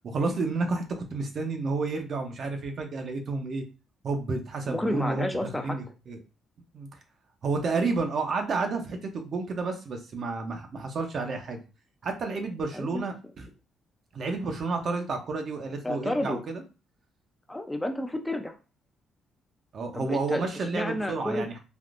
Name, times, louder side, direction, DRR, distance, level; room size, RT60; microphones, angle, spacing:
voice 1, 0.0-3.6 4.0-6.2 6.7-6.9 7.4-11.6 12.0-13.5 14.1-16.6 19.7-21.6, right 3 dB, 55° right, 4 dB, 0.7 m, -30 dB
voice 2, 4.6-5.8 12.7-13.0 15.8-16.4 17.5-18.5 19.9-21.5, left 1 dB, 10° left, 5 dB, 0.4 m, -31 dB
3.5 x 2.5 x 2.4 m, 0.32 s
cardioid pair, 90°, 0 cm